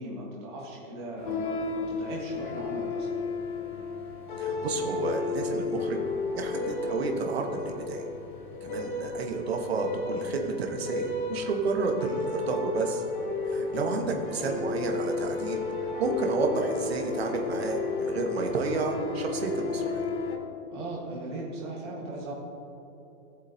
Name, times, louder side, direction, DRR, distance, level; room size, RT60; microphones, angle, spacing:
voice 1, 0.0-3.2 20.7-22.3, right 1 dB, 20° right, -4 dB, 1.4 m, -38 dB
sound 1, 1.2-20.4, left 4 dB, 35° left, 0.9 m, -33 dB
voice 2, 4.4-6.0 6.4-8.0 8.6-13.0 13.5-15.6 16.0-20.1, right 4 dB, 45° right, 2 dB, 1.3 m, -31 dB
17.5 x 7.4 x 2.7 m, 3.0 s
hypercardioid pair, 180°, 43 cm